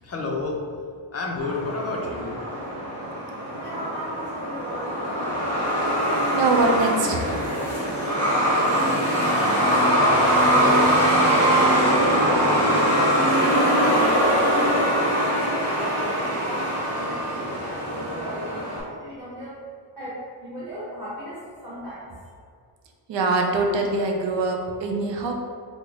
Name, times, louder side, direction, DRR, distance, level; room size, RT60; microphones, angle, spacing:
voice 1, 0.0-0.6 0.9-2.7, left 3 dB, 35° left, -1 dB, 0.4 m, -30 dB
Truck, 1.4-18.8, equal, 35° right, 1.1 m, -22 dB
voice 2, 3.6-5.0 6.4-6.7 8.2-12.1 12.7-19.6 20.0-22.2, equal, 5° right, -12 dB, 0.9 m, -36 dB
voice 3, 6.3-7.3 23.1-25.3, right 3 dB, 70° right, 2 dB, 0.6 m, -23 dB
3.6 x 2.1 x 3.5 m, 2.2 s
wide cardioid pair, 165°, 46 cm